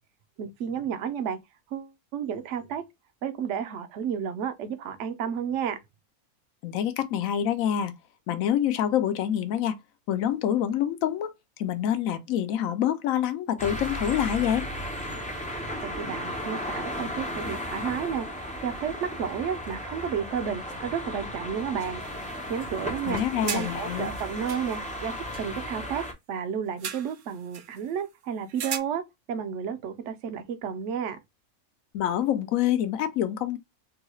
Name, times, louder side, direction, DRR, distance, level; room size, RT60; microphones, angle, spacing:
voice 1, 0.4-1.4 1.7-2.8 3.2-5.8 15.8-18.3 18.6-22.0 22.5-29.0 29.3-31.2, right 7 dB, 65° right, 0.9 m, -32 dB
voice 2, 6.6-7.9 8.3-9.8 10.1-11.3 11.6-14.7 23.1-24.1 31.9-33.6, left 10 dB, 75° left, 1.0 m, -26 dB
sound 1, 13.6-26.1, equal, 10° left, 0.3 m, -35 dB
sound 2, 22.0-22.7 23.0-25.6 26.8-27.9 28.5-28.8, right 7 dB, 80° right, 0.4 m, -38 dB
3.7 x 2.3 x 3.0 m
omnidirectional pair, 1.5 m